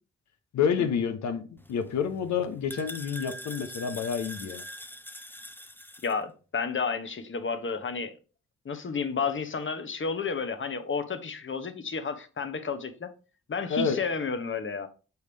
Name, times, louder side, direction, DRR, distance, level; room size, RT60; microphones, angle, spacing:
voice 1, 0.5-4.6 13.7-14.0, left 7 dB, 70° left, 1.0 m, -29 dB
sound 1, 1.6-6.1, equal, 5° left, 0.7 m, -43 dB
voice 2, 6.0-8.2 8.6-13.1 13.5-14.9, left 5 dB, 40° left, 1.1 m, -31 dB
6.7 x 4.7 x 3.4 m
hypercardioid pair, 40°, 30 cm